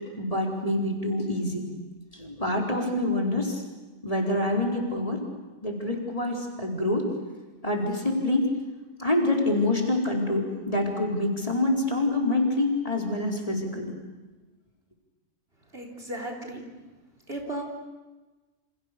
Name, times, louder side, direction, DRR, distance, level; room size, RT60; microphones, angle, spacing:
voice 1, 0.2-1.6 2.1-3.6 4.0-5.2 5.6-7.1 7.6-8.5 9.0-13.9, left 1 dB, 25° left, 0 dB, 4.5 m, -26 dB
voice 2, 15.7-16.6 17.3-17.6, right 1 dB, 45° right, 2 dB, 4.2 m, -35 dB
29.0 x 27.5 x 6.9 m, 1.2 s
omnidirectional pair, 1.4 m